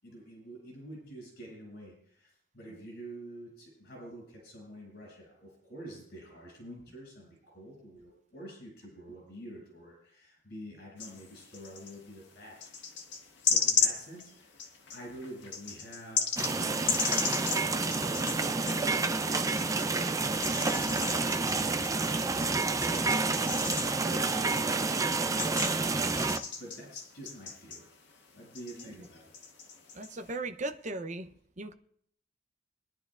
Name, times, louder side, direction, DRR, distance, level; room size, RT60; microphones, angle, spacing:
voice 1, 0.0-12.7 13.4-16.8 18.3-26.2 26.6-27.9 28.3-29.3, right 1 dB, 65° left, 7.0 m, -48 dB
sound 1, 11.0-12.0 12.6-19.9 20.3-28.3 28.5-30.4, left 6 dB, 85° left, 1.7 m, -35 dB
sound 2, 16.4-26.4, right 3 dB, 20° right, 0.5 m, -29 dB
voice 2, 29.9-31.3 31.6-31.7, right 2 dB, 45° right, 0.8 m, -37 dB
23.0 x 11.0 x 2.5 m
head